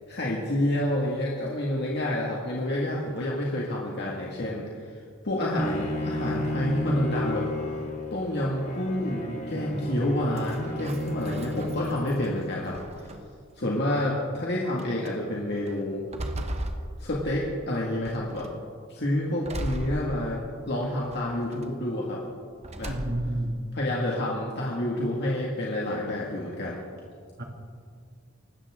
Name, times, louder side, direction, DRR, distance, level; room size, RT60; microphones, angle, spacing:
voice 1, 0.1-5.0 5.2-7.5 8.1-13.1 13.6-16.0 17.0-18.5 18.9-22.2 22.8-22.9 23.7-26.8, left 1 dB, 55° left, -4 dB, 2.1 m, -29 dB
Bowed string instrument, 5.6-12.6, left 1 dB, 35° left, 1.8 m, -33 dB
voice 2, 9.5-10.1 22.9-23.6 27.4-27.5, right 1 dB, 55° right, 2 dB, 2.2 m, -31 dB
sound 1, 10.4-12.3 12.7-13.5 14.2-14.3 14.8-15.1 15.7-17.6 18.1-18.6 19.4-20.6 21.1-21.7 22.6-23.4, right 1 dB, 35° right, 1.1 m, -37 dB
24.5 x 13.0 x 3.7 m, 2.1 s
head